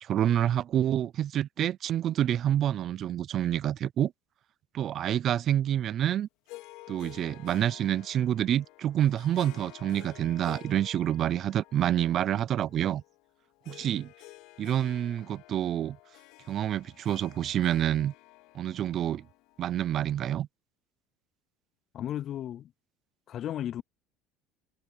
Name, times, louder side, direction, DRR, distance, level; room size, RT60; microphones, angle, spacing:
voice 1, 0.0-4.1 4.7-6.3 6.9-13.0 13.7-14.1 14.6-16.0 16.5-18.1 18.5-19.2 19.6-20.5, right 11 dB, 40° right, 0.4 m, -28 dB
Harp, 6.5-20.1, left 20 dB, 70° left, 3.8 m, -51 dB
voice 2, 21.9-22.7 23.3-23.8, left 11 dB, 40° left, 0.3 m, -34 dB
cardioid pair, 135°, 0 cm